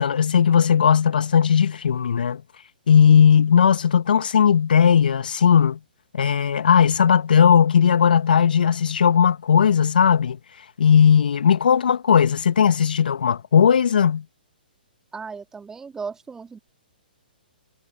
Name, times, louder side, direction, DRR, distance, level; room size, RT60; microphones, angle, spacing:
voice 1, 0.0-2.4 2.9-5.8 6.1-10.4 10.8-14.2, left 7 dB, 65° left, 2.1 m, -17 dB
voice 2, 15.1-16.6, right 5 dB, 10° right, 2.5 m, -36 dB
figure-of-eight pair, 125°, 5 cm